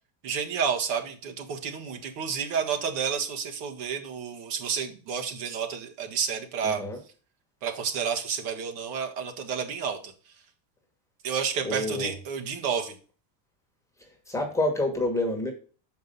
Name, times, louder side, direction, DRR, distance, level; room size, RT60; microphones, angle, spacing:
voice 1, 0.2-6.8 7.6-10.1 11.2-13.0, right 6 dB, 55° right, 4 dB, 1.7 m, -30 dB
voice 2, 6.6-7.0 11.6-12.1 14.3-15.5, left 1 dB, 5° left, 1 dB, 1.4 m, -28 dB
6.7 x 5.3 x 5.4 m, 0.38 s
supercardioid pair, 150°, 48 cm